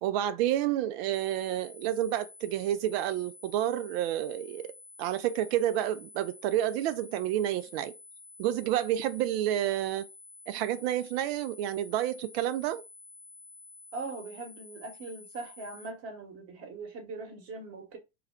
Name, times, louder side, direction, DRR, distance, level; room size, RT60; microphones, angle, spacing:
voice 1, 0.0-4.7 5.0-7.9 8.4-10.1 10.5-12.8, right 12 dB, 55° right, 0.5 m, -29 dB
sound 1, 1.1-15.9, left 3 dB, 70° left, 0.6 m, -51 dB
voice 2, 13.9-18.0, right 3 dB, 40° right, 1.1 m, -41 dB
2.4 x 2.2 x 3.5 m
figure-of-eight pair, 75°, 38 cm